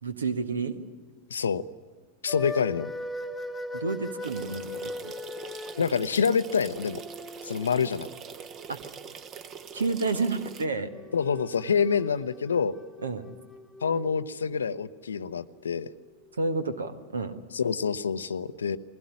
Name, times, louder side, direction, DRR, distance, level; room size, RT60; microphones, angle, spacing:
voice 1, 0.0-0.8 3.7-4.9 8.7-8.8 9.7-10.9 13.0-13.3 16.3-17.4, right 3 dB, 70° right, 11 dB, 1.4 m, -30 dB
voice 2, 1.3-1.6 2.2-2.9 5.8-7.0 7.4-8.1 11.1-12.8 13.8-15.9 17.5-18.8, left 6 dB, 70° left, 15 dB, 0.7 m, -27 dB
sound 1, 2.3-9.6 10.7-16.8, left 2 dB, 5° left, 1.5 m, -41 dB
sound 2, 4.2-10.6, right 7 dB, 30° right, 1.1 m, -43 dB
22.5 x 16.5 x 9.9 m, 1.5 s
figure-of-eight pair, 90°, 0 cm